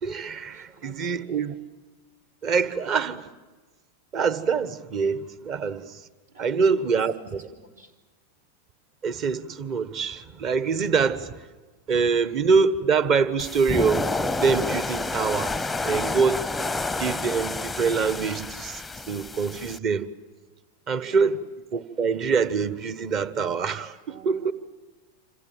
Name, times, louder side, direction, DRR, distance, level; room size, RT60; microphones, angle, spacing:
voice 1, 0.0-1.5 2.4-3.3 4.1-6.1 6.4-7.4 9.0-11.5 11.9-14.1 14.4-15.5 15.8-16.4 17.0-20.1 20.9-21.4 21.7-24.5, right 5 dB, 35° right, 1.3 m, -25 dB
voice 2, 0.5-1.5 6.3-6.9 7.5-7.9 16.5-16.6 21.0-21.3 24.1-24.5, right 5 dB, 70° right, 4.5 m, -49 dB
sound 1, 13.4-19.8, left 3 dB, 5° left, 0.8 m, -29 dB
27.5 x 27.0 x 7.6 m
figure-of-eight pair, 90°, 0 cm